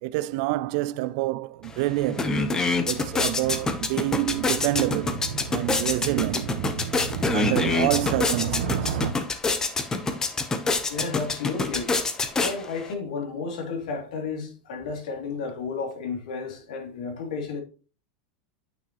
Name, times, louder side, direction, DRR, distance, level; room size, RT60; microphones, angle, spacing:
voice 1, 0.0-2.4 2.9-5.2 5.5-6.6 7.3-9.2, right 17 dB, 55° right, 0.3 m, -27 dB
sound 1, 1.6-1.7 2.0-12.9, left 3 dB, 15° left, 0.9 m, -27 dB
Motorcycle, 1.6-9.1, right 6 dB, 75° right, 1.2 m, -34 dB
voice 2, 10.9-11.9 12.4-17.6, left 4 dB, 85° left, 2.8 m, -32 dB
9.1 x 5.9 x 3.0 m
supercardioid pair, 145°, 4 cm